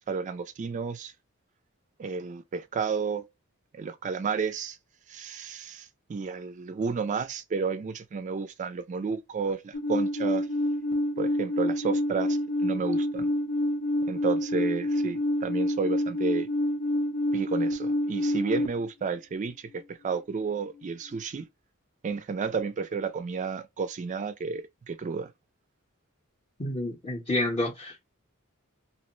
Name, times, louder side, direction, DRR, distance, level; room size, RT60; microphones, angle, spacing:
voice 1, 0.1-1.1 2.0-3.2 3.8-4.8 5.1-10.5 11.2-13.3 14.1-16.5 17.3-21.5 22.0-25.3, right 5 dB, 35° right, 0.3 m, -32 dB
Alarm, 9.7-18.7, left 1 dB, 80° left, 0.7 m, -27 dB
voice 2, 26.6-28.0, left 1 dB, 25° left, 0.7 m, -29 dB
2.9 x 2.1 x 3.0 m
head